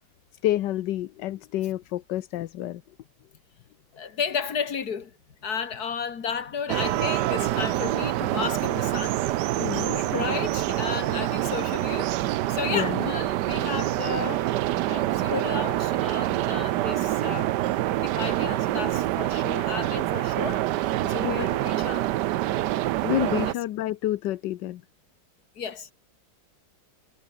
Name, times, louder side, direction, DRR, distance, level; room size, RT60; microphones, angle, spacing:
voice 1, 0.4-2.8 9.6-10.1 12.7-13.1 21.0-21.6 23.0-24.8, left 14 dB, 70° left, 1.3 m, -29 dB
voice 2, 3.9-9.2 9.7-12.1 12.5-14.5 14.8-17.5 17.9-20.7 21.1-22.1 22.3-22.5 23.4-23.6 25.6-25.9, left 6 dB, 55° left, 2.3 m, -33 dB
sound 1, 6.7-23.5, right 15 dB, 70° right, 1.2 m, -26 dB
omnidirectional pair, 2.0 m